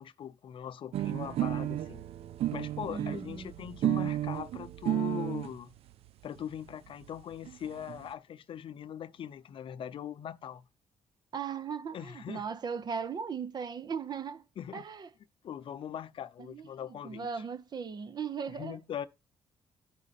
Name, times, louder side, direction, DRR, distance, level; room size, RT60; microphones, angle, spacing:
voice 1, 0.0-2.1 2.5-5.7 6.2-10.6 11.9-12.4 14.6-14.8 15.4-17.3 18.5-19.1, left 9 dB, 60° left, 0.7 m, -41 dB
sound 1, 0.9-5.5 6.4-6.5 6.7-6.8 7.0-7.1 7.3-8.0, right 13 dB, 75° right, 0.4 m, -33 dB
voice 2, 2.8-3.5 11.3-14.4 14.7-15.1 16.4-18.8, right 6 dB, 45° right, 0.8 m, -38 dB
12.0 x 5.0 x 4.1 m
cardioid pair, 105°, 10 cm